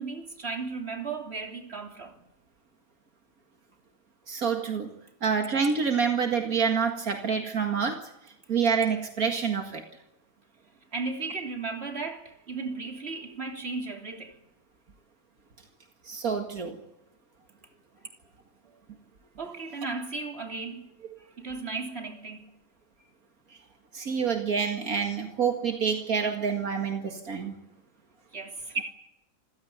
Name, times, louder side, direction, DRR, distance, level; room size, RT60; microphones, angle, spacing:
voice 1, 0.0-2.2 10.9-14.4 19.4-20.9 21.4-22.5 28.3-28.8, right 4 dB, 45° right, 3.5 m, -35 dB
voice 2, 4.3-4.9 5.2-8.1 8.5-9.8 16.1-16.8 23.9-27.5, right 6 dB, 80° right, 2.4 m, -27 dB
26.5 x 16.0 x 9.3 m
omnidirectional pair, 1.5 m